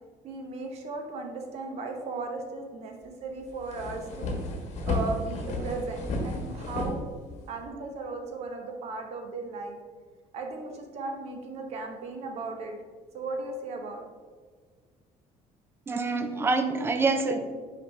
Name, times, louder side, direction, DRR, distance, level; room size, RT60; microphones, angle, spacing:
voice 1, 0.2-4.4 4.9-7.1 7.5-9.8 10.3-12.8 13.1-14.0, right 3 dB, 50° right, 3 dB, 0.9 m, -36 dB
sound 1, 3.0-3.1 3.4-7.7, left 2 dB, 50° left, 1.1 m, -32 dB
voice 2, 15.9-17.4, right 3 dB, 15° right, 7 dB, 0.4 m, -26 dB
5.8 x 5.2 x 3.2 m, 1.5 s
cardioid pair, 165°, 14 cm